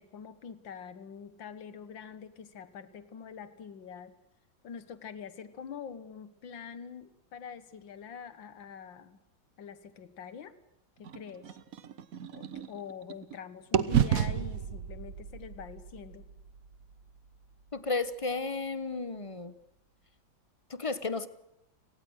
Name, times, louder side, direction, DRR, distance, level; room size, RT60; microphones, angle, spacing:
voice 1, 0.0-4.1 4.6-9.2 9.6-10.6 11.0-11.6 12.3-16.3, left 7 dB, 85° left, 13 dB, 2.1 m, -45 dB
sound 1, 11.0-13.4 13.7-17.7, right 9 dB, 55° right, 1.3 m, -32 dB
voice 2, 17.7-19.5 20.7-21.3, left 3 dB, 25° left, 14 dB, 0.8 m, -33 dB
30.0 x 18.5 x 6.4 m, 0.86 s
omnidirectional pair, 2.0 m